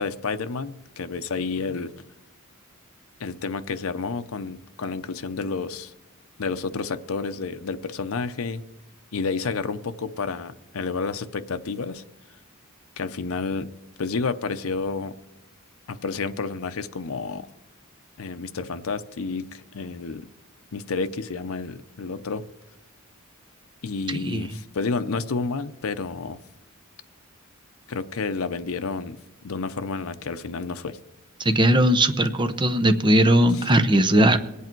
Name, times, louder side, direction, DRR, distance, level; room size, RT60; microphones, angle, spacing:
voice 1, 0.0-1.9 3.2-5.9 6.4-8.6 9.1-12.0 13.0-13.7 14.0-15.1 15.9-17.5 18.2-20.3 20.7-22.5 23.8-26.4 27.9-29.2 29.4-31.0 33.5-33.6, left 4 dB, 75° left, 9 dB, 0.7 m, -30 dB
voice 2, 24.1-24.5 31.4-34.4, right 1 dB, 20° right, 9 dB, 0.8 m, -19 dB
21.5 x 8.4 x 4.5 m, 1.0 s
head